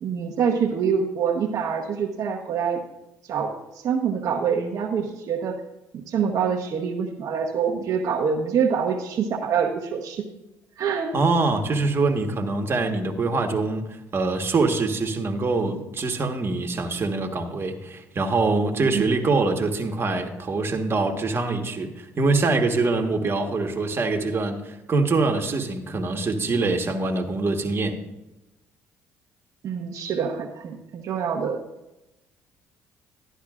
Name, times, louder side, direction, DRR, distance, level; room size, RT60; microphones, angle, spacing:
voice 1, 0.0-2.8 3.2-3.5 3.8-5.6 5.9-10.2 10.8-11.2 18.9-19.0 29.6-31.6, right 6 dB, 60° right, -1 dB, 0.9 m, -25 dB
voice 2, 11.1-28.0, right 3 dB, 40° right, 5 dB, 1.3 m, -24 dB
12.0 x 10.0 x 2.4 m, 0.95 s
supercardioid pair, 65°, 6 cm